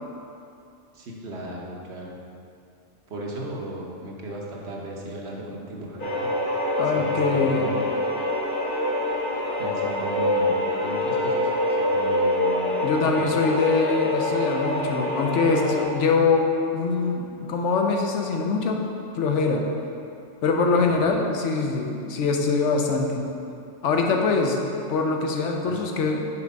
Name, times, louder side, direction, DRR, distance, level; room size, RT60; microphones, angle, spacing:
voice 1, 0.9-2.2 3.1-6.3 6.8-7.9 9.6-11.5 11.9-12.7 13.1-13.3 25.6-25.8, right 1 dB, 60° right, -2 dB, 1.1 m, -36 dB
sound 1, 6.0-15.8, left 1 dB, 45° left, 1.0 m, -25 dB
voice 2, 6.8-7.7 12.8-18.8 19.1-19.6 20.4-23.3 23.8-24.6 24.9-26.3, left 4 dB, 75° left, 2 dB, 1.0 m, -23 dB
5.8 x 4.5 x 5.3 m, 2.6 s
omnidirectional pair, 1.3 m